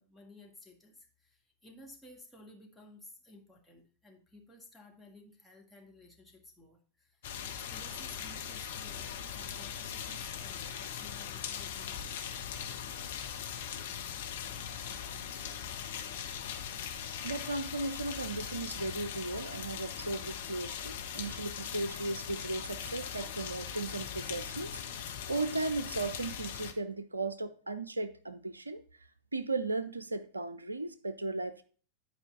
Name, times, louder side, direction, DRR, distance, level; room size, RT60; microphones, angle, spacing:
voice 1, 0.0-12.2, left 1 dB, 5° left, 1.8 m, -55 dB
sound 1, 7.2-26.7, left 8 dB, 55° left, 0.9 m, -40 dB
voice 2, 17.2-28.8 29.3-31.6, right 2 dB, 80° right, 0.5 m, -36 dB
10.5 x 4.8 x 3.7 m
figure-of-eight pair, 90°, 0 cm